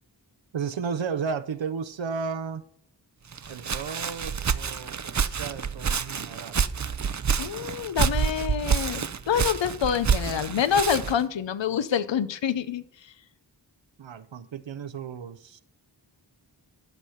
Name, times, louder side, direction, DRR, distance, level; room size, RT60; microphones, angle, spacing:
voice 1, 0.5-2.6 3.5-6.6 14.0-15.6, right 6 dB, 85° right, 0.7 m, -34 dB
Walk footsteps, 3.3-11.3, right 6 dB, 40° right, 0.5 m, -28 dB
voice 2, 7.4-13.1, left 8 dB, 80° left, 0.7 m, -27 dB
12.0 x 6.3 x 5.6 m
wide cardioid pair, 70°, 44 cm